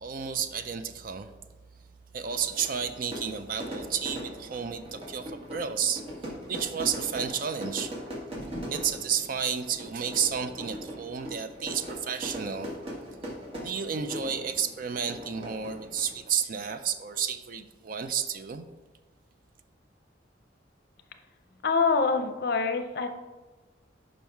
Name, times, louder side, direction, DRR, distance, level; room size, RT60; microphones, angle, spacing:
voice 1, 0.0-1.3 2.1-6.0 6.5-7.9 8.7-12.7 13.2-13.3 13.6-18.7, right 7 dB, 50° right, 9 dB, 0.4 m, -31 dB
Fire / Fireworks, 2.2-16.3, equal, 30° right, 1.5 m, -40 dB
voice 2, 21.6-23.1, left 4 dB, 55° left, 7 dB, 0.6 m, -25 dB
5.5 x 5.3 x 4.5 m, 1.2 s
head